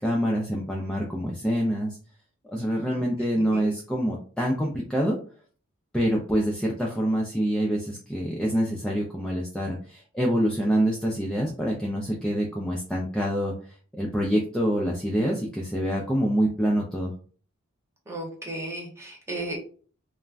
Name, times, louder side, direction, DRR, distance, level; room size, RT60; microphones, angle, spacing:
voice 1, 0.0-2.0 2.5-5.2 5.9-17.1, equal, 5° left, -3 dB, 0.3 m, -26 dB
voice 2, 3.3-3.7 18.1-19.6, right 1 dB, 15° right, -1 dB, 0.8 m, -35 dB
2.4 x 2.1 x 3.3 m, 0.42 s
head